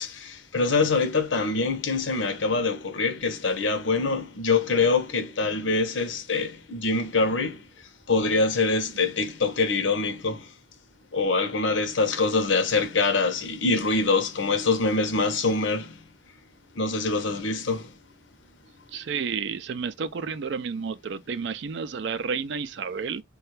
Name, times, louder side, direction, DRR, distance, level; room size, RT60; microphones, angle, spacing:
voice 1, 0.0-7.6 8.1-10.5 11.1-16.1 16.7-17.9, left 3 dB, 70° left, 0.7 m, -24 dB
voice 2, 18.9-23.2, right 6 dB, 60° right, 0.4 m, -31 dB
3.3 x 2.3 x 3.1 m
head